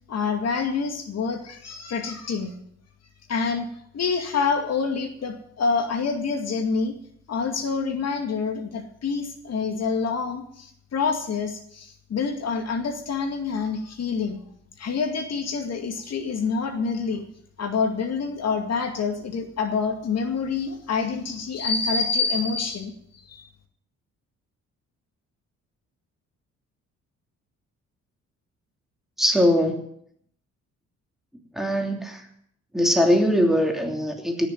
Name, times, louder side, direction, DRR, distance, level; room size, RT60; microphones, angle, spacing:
voice 1, 0.1-2.5 3.3-6.9 7.3-14.4 14.8-17.2 17.6-22.9 23.3-23.4, left 5 dB, 55° left, 5 dB, 2.3 m, -27 dB
voice 2, 29.2-29.8 31.5-32.2 32.7-34.5, equal, ahead, 2 dB, 3.0 m, -21 dB
17.0 x 7.0 x 9.3 m, 0.69 s
cardioid pair, 90°, 30 cm